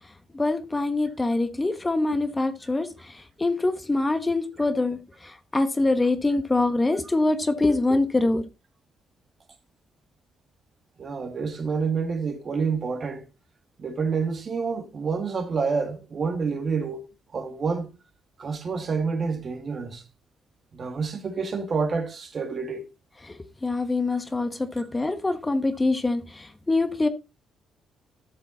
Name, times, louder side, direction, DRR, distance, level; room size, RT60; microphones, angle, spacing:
voice 1, 0.3-2.9 3.4-5.0 5.5-8.4 23.6-27.1, left 2 dB, 20° left, 1.1 m, -24 dB
voice 2, 11.0-13.2 13.8-17.0 17.3-17.9 18.4-20.0 20.7-22.9, right 5 dB, 45° right, 2.2 m, -28 dB
12.5 x 6.9 x 3.9 m
cardioid pair, 90°, 0 cm